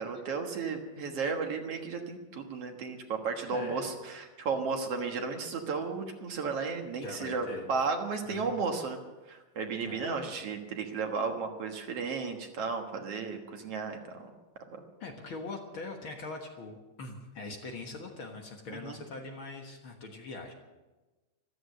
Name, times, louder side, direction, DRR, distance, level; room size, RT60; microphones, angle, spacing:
voice 1, 0.0-9.0 9.3-14.2 14.7-14.8 18.7-19.0, right 4 dB, 60° right, 4 dB, 2.3 m, -34 dB
voice 2, 3.5-3.9 7.0-7.7 8.3-8.6 9.8-10.1 15.0-20.5, left 3 dB, 50° left, 3 dB, 1.9 m, -42 dB
14.5 x 13.5 x 6.6 m, 1.2 s
omnidirectional pair, 3.4 m